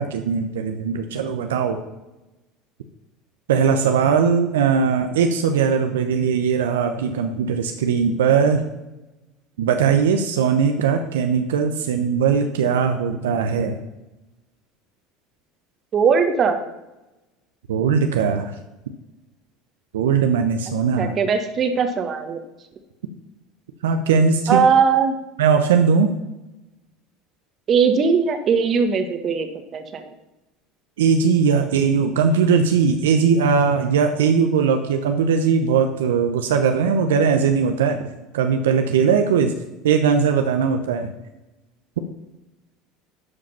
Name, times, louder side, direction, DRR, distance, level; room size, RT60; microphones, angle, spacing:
voice 1, 0.0-1.8 3.5-8.7 9.6-13.8 17.7-18.5 19.9-21.1 23.8-24.6 25.4-26.1 31.0-38.0 38.3-39.5 39.8-41.1, right 6 dB, 85° right, 6 dB, 0.8 m, -19 dB
voice 2, 15.9-16.6 21.0-22.4 24.5-25.2 27.7-30.1, right 6 dB, 40° right, 7 dB, 1.4 m, -19 dB
11.0 x 5.0 x 5.6 m, 0.99 s
hypercardioid pair, 80°, 0 cm